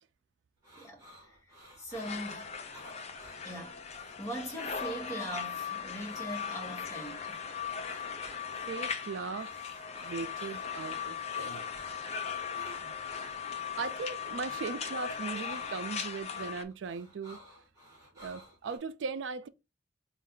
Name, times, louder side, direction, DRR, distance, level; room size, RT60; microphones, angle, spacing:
sound 1, 0.6-18.8, equal, 20° right, 2.1 m, -56 dB
voice 1, 0.8-2.5 3.4-3.8 4.2-7.5, right 1 dB, 15° left, 1.2 m, -41 dB
sound 2, 1.9-16.6, left 7 dB, 35° left, 0.5 m, -38 dB
voice 2, 8.6-9.7 10.0-11.7 12.8-12.9 13.7-17.4 18.2-19.5, right 4 dB, 85° right, 0.4 m, -38 dB
4.2 x 2.4 x 3.7 m
head